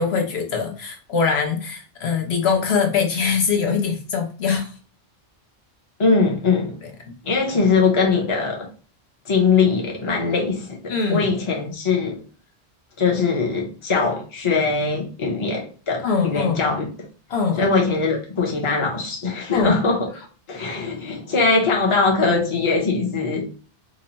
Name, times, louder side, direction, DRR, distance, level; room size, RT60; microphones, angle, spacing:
voice 1, 0.0-4.7 10.9-11.3 16.0-16.6 17.3-17.7 19.5-19.8, left 5 dB, 80° left, 1.1 m, -22 dB
voice 2, 6.0-6.8 7.2-8.7 9.2-12.2 13.0-16.9 17.6-20.1 20.5-23.5, left 4 dB, 30° left, 0.8 m, -21 dB
3.0 x 2.2 x 4.0 m
omnidirectional pair, 1.1 m